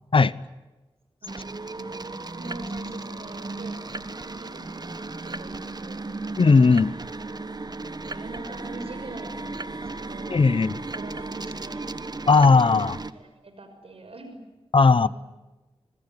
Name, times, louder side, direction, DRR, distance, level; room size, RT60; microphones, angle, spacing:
sound 1, 1.3-13.1, right 3 dB, 40° right, 1.4 m, -35 dB
voice 1, 1.7-3.8 4.4-6.0 8.0-10.4 10.9-11.9 12.8-14.4 14.9-15.1, right 2 dB, 70° right, 8 dB, 6.1 m, -43 dB
voice 2, 6.4-6.9 10.3-10.7 12.3-13.0 14.7-15.1, left 4 dB, 60° left, 19 dB, 0.9 m, -17 dB
25.0 x 22.0 x 9.6 m, 1.1 s
cardioid pair, 50°, 10 cm